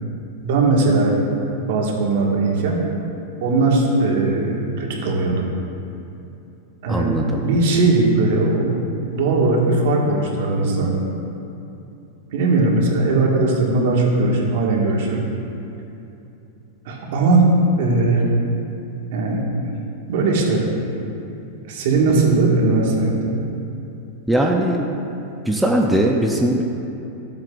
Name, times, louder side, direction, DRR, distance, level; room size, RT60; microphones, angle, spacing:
voice 1, 0.4-1.1 1.7-2.8 3.4-5.5 6.8-11.0 12.3-15.2 16.9-18.3 19.1-19.5 20.1-20.7 21.6-23.4, right 3 dB, 65° right, -2 dB, 1.8 m, -19 dB
voice 2, 6.9-7.4 24.3-24.9 25.5-26.6, right 1 dB, 5° right, 0 dB, 0.5 m, -19 dB
13.0 x 7.6 x 2.5 m, 2.8 s
supercardioid pair, 150°, 0 cm